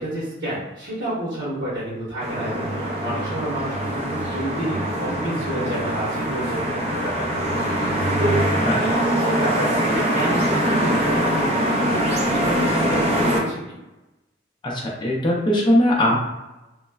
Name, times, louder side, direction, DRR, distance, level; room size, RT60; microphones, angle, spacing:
voice 1, 0.0-8.4 8.8-13.8, right 1 dB, 80° right, -9 dB, 1.2 m, -29 dB
sound 1, 2.2-13.4, equal, 35° right, 0.5 m, -23 dB
voice 2, 14.6-16.2, left 1 dB, 25° left, -3 dB, 0.5 m, -19 dB
3.1 x 2.1 x 2.2 m, 1.0 s
head